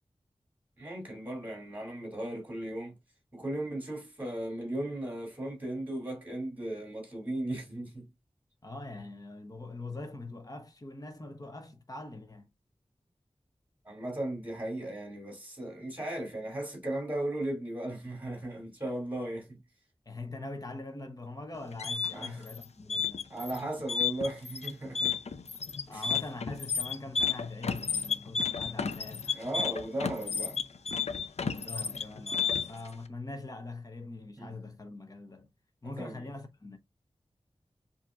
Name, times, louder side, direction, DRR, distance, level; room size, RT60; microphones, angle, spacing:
voice 1, 0.8-3.0 3.3-8.1 13.8-19.6 22.1-22.5 23.3-25.2 25.9-26.1 29.3-30.6 34.4-34.5 35.8-36.3, right 1 dB, 15° right, 2.5 m, -36 dB
voice 2, 8.6-12.5 20.1-23.3 25.9-29.4 31.5-35.5 35.8-36.8, left 2 dB, 35° left, 0.9 m, -43 dB
sound 1, 21.5-32.9, left 6 dB, 80° left, 0.5 m, -32 dB
7.2 x 2.9 x 2.5 m
wide cardioid pair, 85°, 11 cm